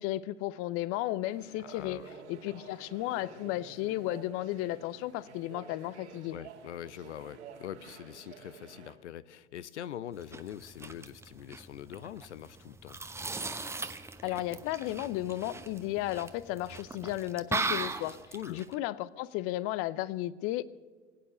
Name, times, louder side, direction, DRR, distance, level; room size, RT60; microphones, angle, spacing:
voice 1, 0.0-2.0 2.3-6.4 14.2-18.2 18.5-20.6, left 15 dB, 40° left, 19 dB, 0.6 m, -34 dB
sound 1, 1.3-8.9, right 6 dB, 70° right, 3.0 m, -51 dB
voice 2, 1.6-2.1 2.4-2.5 6.3-13.0 18.3-18.6, left 11 dB, 80° left, 17 dB, 0.7 m, -43 dB
sound 2, 10.1-18.7, right 3 dB, 5° right, 0.9 m, -39 dB
22.0 x 8.8 x 6.8 m, 1.4 s
hypercardioid pair, 95°, 35 cm